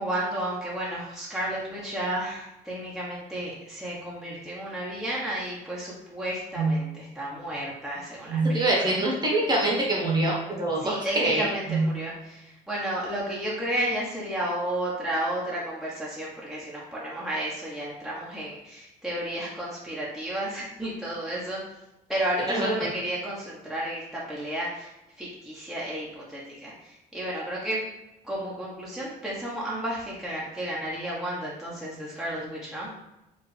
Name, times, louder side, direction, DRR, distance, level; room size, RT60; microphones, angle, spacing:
voice 1, 0.0-9.0 10.7-21.6 22.1-24.9 25.2-27.8 28.2-32.9, right 1 dB, ahead, -6 dB, 1.2 m, -32 dB
sound 1, 6.5-6.8 8.3-8.6 10.0-10.3 11.7-12.0, right 3 dB, 85° right, 0.7 m, -25 dB
voice 2, 8.5-11.5 22.4-22.9, right 1 dB, 25° right, -2 dB, 1.4 m, -25 dB
5.0 x 2.9 x 3.3 m, 0.91 s
cardioid pair, 110°, 17 cm